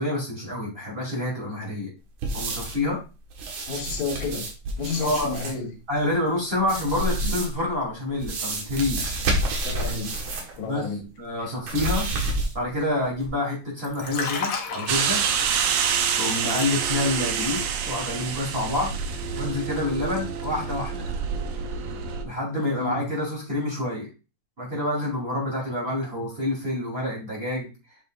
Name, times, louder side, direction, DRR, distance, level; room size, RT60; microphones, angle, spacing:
voice 1, 0.0-1.9 2.3-3.0 5.0-5.4 5.9-9.2 10.6-10.9 11.2-12.1 12.5-15.3 16.2-18.9 19.3-21.1 22.2-24.1 24.6-27.7, left 2 dB, 20° right, -3 dB, 2.8 m, -27 dB
sound 1, 2.2-2.9 3.3-5.6 6.6-7.7 8.2-10.6 10.8-10.9 11.6-12.7 13.2-13.3, right 2 dB, 85° right, 2.9 m, -29 dB
voice 2, 3.7-4.5 4.8-5.7 7.2-7.4 9.6-11.1 11.4-11.5 22.8-23.0, left 4 dB, 80° left, 3 dB, 2.6 m, -31 dB
Liquid, 13.8-17.1 17.4-17.7, left 5 dB, 60° left, 1.9 m, -33 dB
sound 2, 14.9-22.2, right 7 dB, 70° right, 1.7 m, -27 dB
7.9 x 5.6 x 2.4 m, 0.31 s
omnidirectional pair, 3.3 m